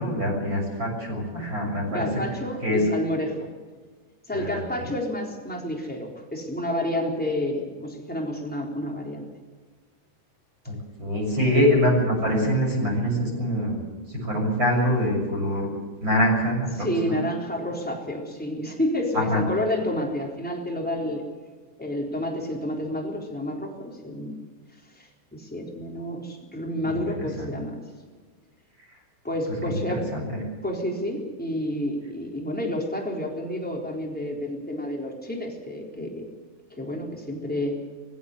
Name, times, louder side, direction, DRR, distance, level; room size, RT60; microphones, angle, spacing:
voice 1, 0.0-2.1 2.6-2.8 4.3-4.6 10.7-10.8 11.0-13.8 14.1-15.7 16.0-17.2 19.1-19.4 26.8-27.6 29.7-29.8 30.1-30.2, equal, 25° right, 0 dB, 7.1 m, -24 dB
voice 2, 1.9-3.5 4.3-9.3 16.7-21.2 21.8-24.4 24.9-27.8 29.2-30.1 30.6-36.2 36.7-37.8, left 1 dB, ahead, -1 dB, 3.1 m, -30 dB
21.0 x 15.5 x 8.0 m, 1.4 s
omnidirectional pair, 5.4 m